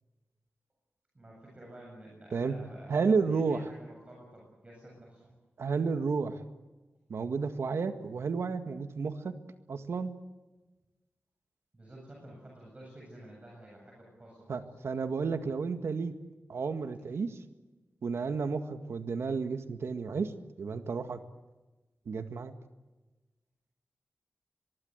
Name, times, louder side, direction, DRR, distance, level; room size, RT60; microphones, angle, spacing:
voice 1, 1.1-5.3 11.7-14.7, right 1 dB, 30° right, -2 dB, 7.8 m, -51 dB
voice 2, 2.9-3.7 5.6-6.4 7.1-9.4 9.7-10.1 14.5-16.2 16.5-17.4 18.0-20.3 20.6-21.2 22.1-22.5, right 5 dB, 85° right, 8 dB, 1.9 m, -31 dB
23.5 x 23.5 x 8.1 m, 1.2 s
wide cardioid pair, 125°, 4 cm